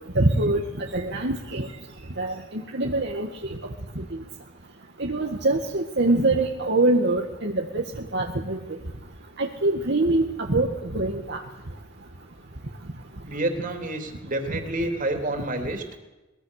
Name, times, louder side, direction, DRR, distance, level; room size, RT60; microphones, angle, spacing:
voice 1, 0.2-1.7 2.2-3.6 4.0-4.1 5.0-7.8 8.1-8.6 9.4-11.4, right 2 dB, 60° right, 2 dB, 1.7 m, -24 dB
voice 2, 13.3-15.8, right 1 dB, 45° right, 5 dB, 3.5 m, -28 dB
23.5 x 21.0 x 6.6 m, 1.1 s
head